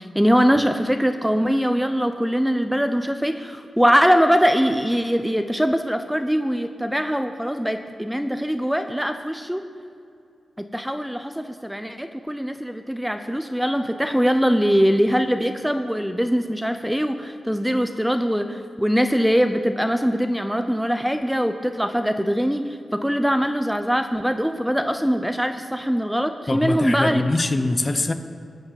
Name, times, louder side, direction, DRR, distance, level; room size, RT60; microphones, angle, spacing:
voice 1, 0.0-9.6 10.6-22.6 22.9-27.2, equal, 5° right, 7 dB, 0.8 m, -22 dB
voice 2, 26.5-28.1, left 2 dB, 35° left, 8 dB, 0.9 m, -23 dB
14.5 x 8.5 x 7.2 m, 2.4 s
cardioid pair, 70°, 0 cm